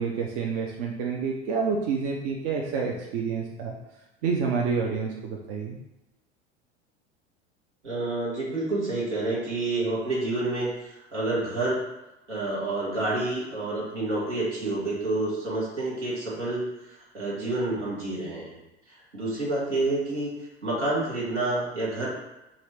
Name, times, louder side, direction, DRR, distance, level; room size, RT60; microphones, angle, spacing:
voice 1, 0.0-3.8 4.2-5.8, right 5 dB, 55° right, -1 dB, 0.6 m, -28 dB
voice 2, 7.8-10.7 11.1-11.8 12.3-16.6 17.1-18.6 19.1-20.3 20.6-22.1, right 2 dB, 90° right, -6 dB, 1.3 m, -28 dB
3.9 x 2.4 x 3.2 m, 0.99 s
figure-of-eight pair, 75°, 34 cm